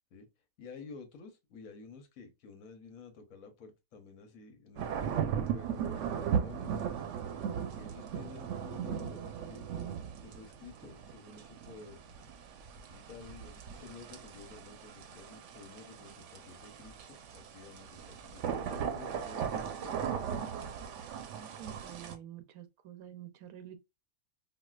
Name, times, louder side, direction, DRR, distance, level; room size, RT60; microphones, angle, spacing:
voice 1, 0.6-6.8 7.8-9.7 10.2-12.2 12.9-20.4, left 4 dB, 75° left, 1.2 m, -51 dB
sound 1, 4.8-22.1, right 8 dB, 65° right, 0.9 m, -38 dB
voice 2, 21.3-23.8, right 10 dB, 90° right, 1.1 m, -48 dB
4.8 x 2.1 x 2.3 m
omnidirectional pair, 1.5 m